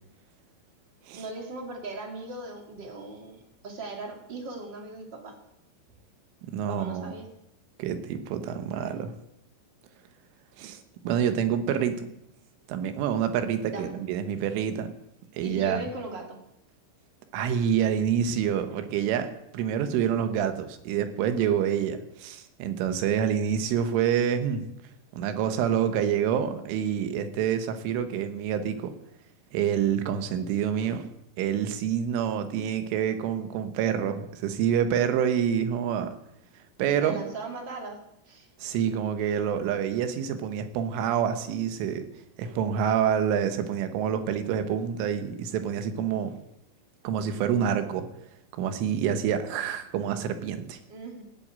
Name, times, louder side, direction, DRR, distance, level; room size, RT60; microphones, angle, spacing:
voice 1, 1.1-5.3 6.7-7.2 8.8-9.0 13.7-13.9 15.4-16.4 37.0-38.0 38.2-38.5 50.9-51.2, right 3 dB, 40° right, 2 dB, 1.6 m, -38 dB
voice 2, 6.5-7.1 7.8-9.1 10.6-12.1 12.7-14.9 15.3-15.9 17.3-24.7 25.1-28.9 29.5-31.1 31.4-36.2 36.8-37.2 38.6-42.1 42.4-46.4 47.1-48.1 48.5-50.8, right 8 dB, 80° right, 9 dB, 3.7 m, -27 dB
16.5 x 8.2 x 8.8 m, 0.80 s
omnidirectional pair, 5.6 m